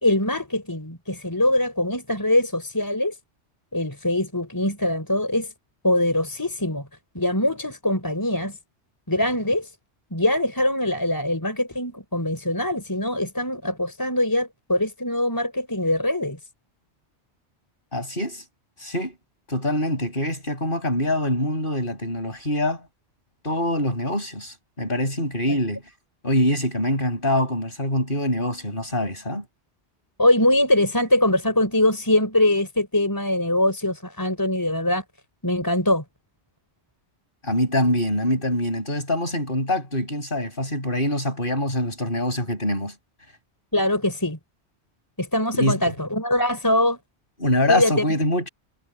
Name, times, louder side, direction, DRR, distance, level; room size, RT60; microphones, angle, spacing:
voice 1, 0.0-3.1 3.7-5.5 5.8-6.9 7.1-8.6 9.1-9.7 10.1-16.4 30.2-35.0 35.4-36.0 43.7-44.4 45.2-47.0 47.7-48.0, left 1 dB, 15° left, 4.4 m, -22 dB
voice 2, 17.9-18.4 18.8-19.1 19.5-22.8 23.4-25.8 26.2-29.4 37.4-42.9 45.5-45.8 47.4-48.5, left 1 dB, 50° left, 7.9 m, -24 dB
omnidirectional pair, 1.2 m